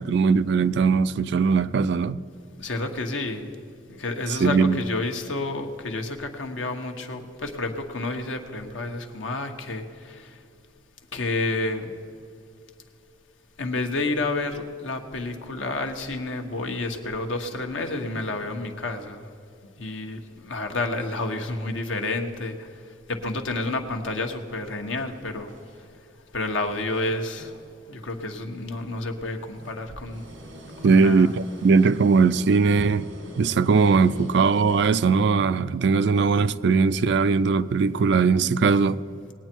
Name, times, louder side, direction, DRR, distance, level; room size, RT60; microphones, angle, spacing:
voice 1, 0.0-2.2 4.3-4.8 30.8-33.1 33.4-39.0, right 5 dB, 60° right, 0.4 m, -20 dB
voice 2, 2.6-3.5 4.0-10.3 11.1-11.9 13.6-19.2 19.8-22.7 23.1-25.5 26.3-27.5 27.9-30.2 30.8-31.3, left 2 dB, 85° left, 1.2 m, -30 dB
sound 1, 24.9-26.1 26.5-28.2 28.5-28.6 29.4-34.9, equal, 80° right, 1.7 m, -44 dB
20.0 x 8.9 x 4.5 m
head